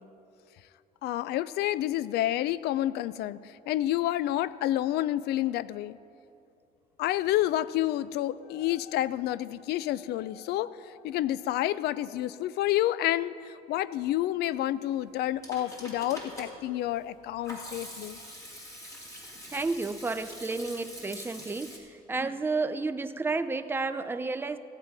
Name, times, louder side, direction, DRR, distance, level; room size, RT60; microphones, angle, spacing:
voice 1, 1.0-6.0 7.0-18.2, left 14 dB, 75° left, 18 dB, 0.4 m, -29 dB
Hands / Sink (filling or washing), 15.1-21.8, equal, 20° left, 2.7 m, -44 dB
voice 2, 19.5-24.6, right 3 dB, 15° right, 10 dB, 0.5 m, -31 dB
15.5 x 8.1 x 5.3 m, 2.6 s
cardioid pair, 110°, 17 cm